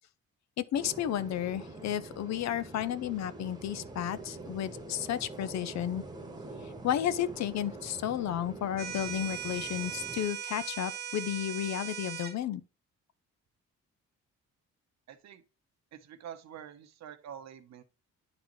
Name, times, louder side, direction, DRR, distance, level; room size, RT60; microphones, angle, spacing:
voice 1, 0.6-6.0 6.6-12.6, left 10 dB, 65° left, 0.6 m, -33 dB
sound 1, 0.7-10.2, right 2 dB, 15° right, 1.2 m, -45 dB
sound 2, 8.8-12.4, right 10 dB, 35° right, 0.6 m, -39 dB
voice 2, 15.1-15.4 15.9-17.8, right 9 dB, 60° right, 0.8 m, -47 dB
9.6 x 4.0 x 3.0 m
cardioid pair, 90°, 30 cm